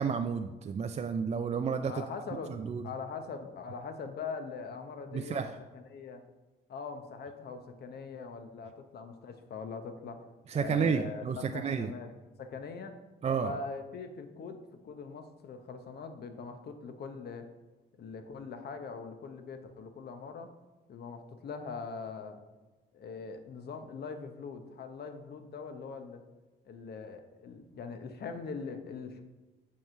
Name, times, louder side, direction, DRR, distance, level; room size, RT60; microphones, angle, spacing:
voice 1, 0.0-2.0 2.5-2.8 5.1-5.6 10.5-11.9 13.2-13.5, right 6 dB, 35° right, 6 dB, 0.4 m, -31 dB
voice 2, 1.9-2.5 2.8-6.2 6.7-10.3 10.5-12.1 12.4-13.0 13.3-17.5 18.0-20.5 20.9-22.4 22.9-26.2 26.6-29.2, left 5 dB, 60° left, 7 dB, 0.9 m, -42 dB
7.2 x 3.1 x 5.5 m, 1.2 s
cardioid pair, 75°, 19 cm